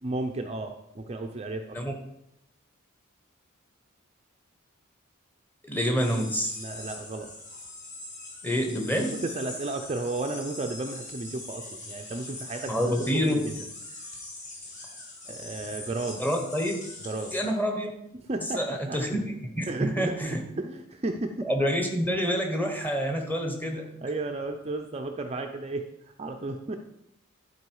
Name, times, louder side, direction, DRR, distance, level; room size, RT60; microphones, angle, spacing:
voice 1, 0.0-1.8 6.6-7.3 9.2-13.7 15.3-16.2 17.0-17.3 18.3-19.0 19.7-20.1 20.6-21.5 24.0-25.8 26.2-26.8, right 2 dB, 30° right, 5 dB, 0.5 m, -33 dB
voice 2, 5.7-6.5 8.4-9.1 12.6-13.5 16.2-16.8 17.3-17.9 18.5-20.4 21.4-23.9, equal, 10° left, 2 dB, 1.2 m, -27 dB
sound 1, 6.0-17.5, left 2 dB, 35° left, 2.0 m, -42 dB
11.5 x 4.6 x 4.7 m, 0.81 s
head